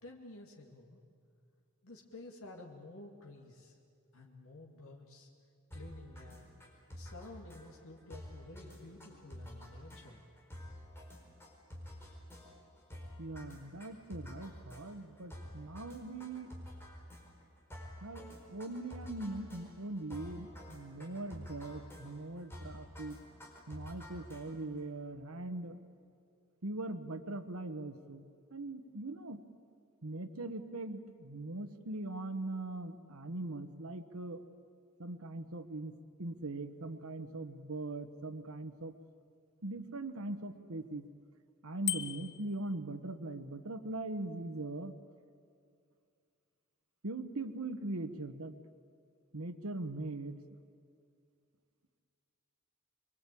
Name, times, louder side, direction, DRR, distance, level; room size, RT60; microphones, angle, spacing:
voice 1, 0.0-1.0 1.8-3.8 4.1-5.3 5.7-6.5 6.9-10.2, left 2 dB, 85° left, 0 dB, 2.4 m, -52 dB
sound 1, 5.7-24.8, equal, 10° left, 4.8 m, -50 dB
voice 2, 13.2-16.5 18.0-18.2 18.5-23.2 23.7-25.8 26.6-29.4 30.0-34.4 35.0-38.9 39.6-41.0 41.6-44.9 47.0-48.5 49.3-50.4, right 2 dB, 90° right, 10 dB, 1.3 m, -41 dB
Bicycle bell, 41.9-42.5, left 13 dB, 55° left, 0.9 m, -36 dB
25.5 x 23.0 x 8.5 m, 2.3 s
head